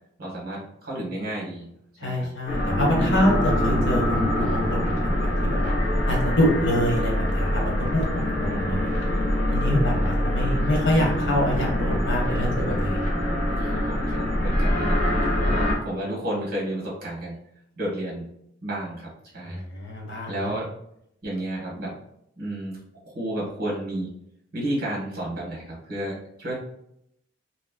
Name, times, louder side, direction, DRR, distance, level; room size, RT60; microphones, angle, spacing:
voice 1, 0.2-1.7 2.0-2.3 8.4-8.9 13.6-15.0 15.4-17.4 17.8-18.2 18.6-19.6 20.3-20.7 21.2-21.9 22.4-22.8 23.0-24.1 24.5-26.5, right 1 dB, 55° right, -4 dB, 1.3 m, -32 dB
voice 2, 2.0-5.7 6.0-8.9 9.5-13.0 19.4-20.5, equal, 75° left, -1 dB, 1.1 m, -26 dB
sound 1, 2.5-15.8, left 1 dB, 40° left, 0.9 m, -24 dB
3.1 x 2.9 x 2.3 m, 0.75 s
head